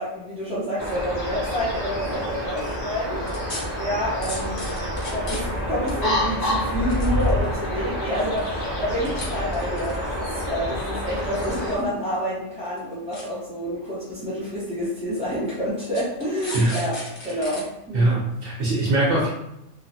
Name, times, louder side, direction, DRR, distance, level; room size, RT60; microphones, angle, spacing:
voice 1, 0.0-4.7 5.0-18.1, equal, 5° right, -12 dB, 0.5 m, -28 dB
sound 1, 0.8-11.8, equal, 45° left, 0.5 m, -28 dB
sound 2, 2.3-2.6 3.3-3.6 4.2-5.6 5.9-6.0 6.7-7.6 8.1-8.6 9.1-9.2 9.5-10.2 11.0-11.9 12.1-12.2 12.7-12.8 13.1-13.2 14.1-14.2 14.8-14.9 15.8-17.6 18.0-18.1, left 1 dB, 65° left, 1.1 m, -36 dB
voice 2, 17.9-19.3, right 2 dB, 65° right, -7 dB, 1.1 m, -21 dB
3.0 x 2.1 x 2.7 m, 0.85 s
omnidirectional pair, 1.3 m